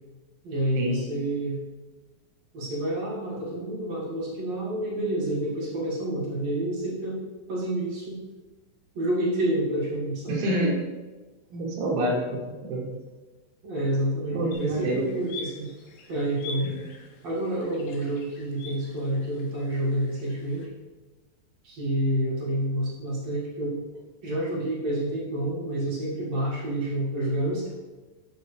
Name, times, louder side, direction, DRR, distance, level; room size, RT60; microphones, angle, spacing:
voice 1, 0.4-1.6 2.5-7.2 7.5-8.2 8.9-10.4 13.6-15.7 16.1-16.7 17.2-20.7 21.6-23.8 24.2-27.7, right 1 dB, 50° right, -7 dB, 2.0 m, -28 dB
voice 2, 10.3-10.8 11.5-12.9 14.3-15.1 16.8-16.9, right 1 dB, 75° right, -1 dB, 3.6 m, -27 dB
sound 1, 14.5-20.7, left 3 dB, 75° left, 3.0 m, -45 dB
9.3 x 6.1 x 3.3 m, 1.2 s
omnidirectional pair, 5.7 m